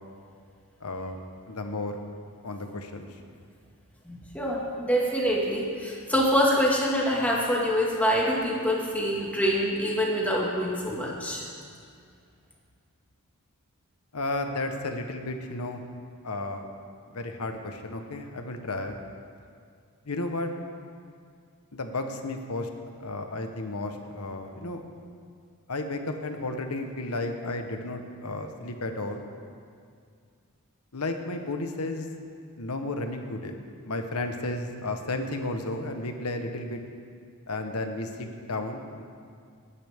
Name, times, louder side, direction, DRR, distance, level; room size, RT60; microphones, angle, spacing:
voice 1, 0.8-1.2 1.5-2.0 2.4-3.1 14.1-15.8 16.2-16.7 17.1-19.0 20.1-20.5 21.7-22.7 23.0-24.8 25.7-29.3 30.9-32.1 32.6-33.6 33.8-36.8 37.5-39.0, left 2 dB, 85° left, 5 dB, 1.1 m, -33 dB
voice 2, 4.1-11.5, equal, 5° left, -3 dB, 1.9 m, -25 dB
20.0 x 9.8 x 3.6 m, 2.2 s
head